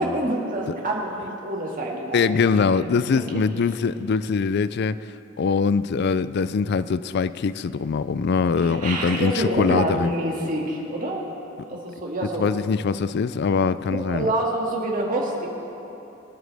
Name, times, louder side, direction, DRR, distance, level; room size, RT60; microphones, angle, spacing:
voice 1, 0.0-2.9 3.3-3.4 8.6-11.2 11.7-12.5 13.9-15.5, right 1 dB, 45° right, -2 dB, 2.1 m, -27 dB
voice 2, 2.1-5.0 5.4-10.1 12.4-14.3, left 5 dB, 55° left, 15 dB, 0.4 m, -22 dB
25.0 x 9.0 x 3.5 m, 3.0 s
head